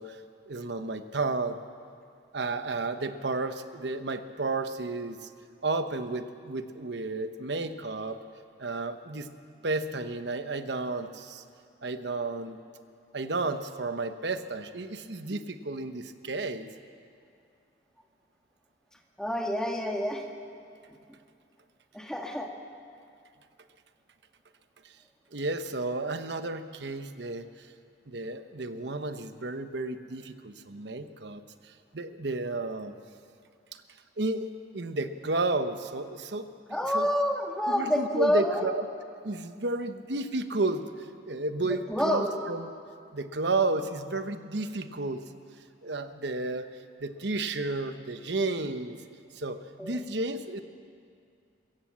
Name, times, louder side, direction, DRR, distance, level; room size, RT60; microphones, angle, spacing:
voice 1, 0.0-1.6 2.3-5.3 5.6-8.2 8.6-9.3 9.6-11.4 11.8-12.6 13.1-16.7 25.3-27.7 28.1-32.9 34.2-37.1 37.7-38.8 39.2-42.7 43.1-45.2 45.8-46.7 47.0-49.0 49.3-50.6, right 3 dB, 75° right, 9 dB, 1.1 m, -32 dB
voice 2, 19.2-20.2 21.9-22.5 36.7-38.7 41.7-42.4 49.8-50.0, left 1 dB, 5° left, 1 dB, 1.7 m, -28 dB
24.5 x 15.5 x 7.5 m, 2.3 s
head